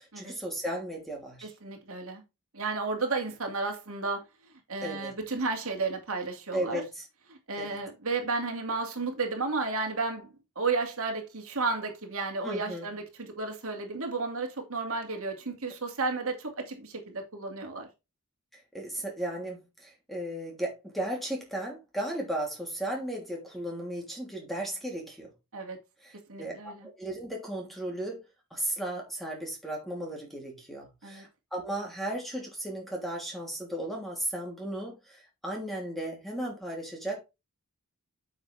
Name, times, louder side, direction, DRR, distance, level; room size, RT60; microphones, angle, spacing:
voice 1, 0.0-1.5 4.8-5.1 6.5-7.0 7.6-7.8 12.4-12.9 18.7-25.3 26.0-28.2 28.5-37.2, right 1 dB, ahead, 3.1 m, -35 dB
voice 2, 1.4-2.2 2.5-4.2 4.7-6.8 7.3-10.3 10.6-17.9 25.5-25.8 26.3-26.9 31.0-31.2, right 3 dB, 65° right, 2.4 m, -33 dB
8.9 x 6.4 x 3.4 m
head